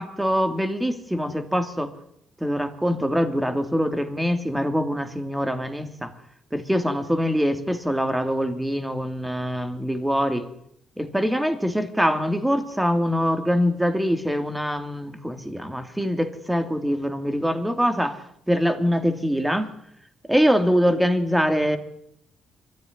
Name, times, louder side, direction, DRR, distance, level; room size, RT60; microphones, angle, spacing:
voice 1, 0.0-1.9 2.4-6.1 6.5-10.4 11.0-19.7 20.3-21.8, equal, 5° right, 7 dB, 3.0 m, -24 dB
23.5 x 15.0 x 10.0 m, 0.75 s
cardioid pair, 90°, 0 cm